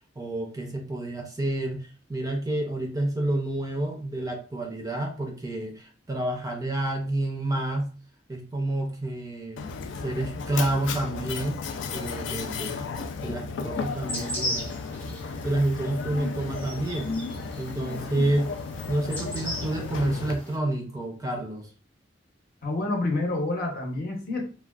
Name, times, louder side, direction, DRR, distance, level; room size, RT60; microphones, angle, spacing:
voice 1, 0.2-7.9 8.3-9.8 10.0-11.6 11.9-12.8 13.2-14.7 15.4-17.1 17.6-18.5 18.9-21.7, right 1 dB, 20° right, 2 dB, 0.4 m, -29 dB
Mechanisms, 9.6-20.3, left 4 dB, 85° left, 0.4 m, -34 dB
sound 1, 13.8-20.5, equal, 10° left, 0.7 m, -38 dB
voice 2, 22.6-24.5, left 2 dB, 50° left, 1 dB, 0.8 m, -28 dB
3.5 x 2.2 x 2.3 m, 0.37 s
head